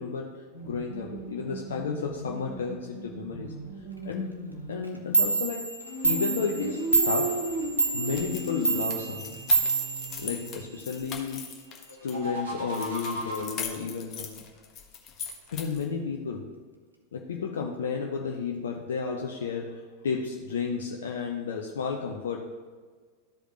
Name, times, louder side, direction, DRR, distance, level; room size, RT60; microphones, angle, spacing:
voice 1, 0.0-3.5 4.0-4.3 4.7-5.7 6.0-7.4 7.9-9.4 10.2-11.4 12.0-14.4 15.5-16.5 17.1-22.4, left 5 dB, 65° left, 0 dB, 0.7 m, -32 dB
sound 1, 0.5-4.8 5.8-10.7 11.9-13.4, right 1 dB, 65° right, 2.2 m, -37 dB
Clock, 4.8-4.9 5.1-10.8, right 4 dB, 90° right, 0.8 m, -27 dB
sound 2, 8.1-12.1 12.7-15.9, left 7 dB, 35° left, 1.1 m, -40 dB
13.0 x 5.0 x 3.1 m, 1.5 s
figure-of-eight pair, 90°, 0 cm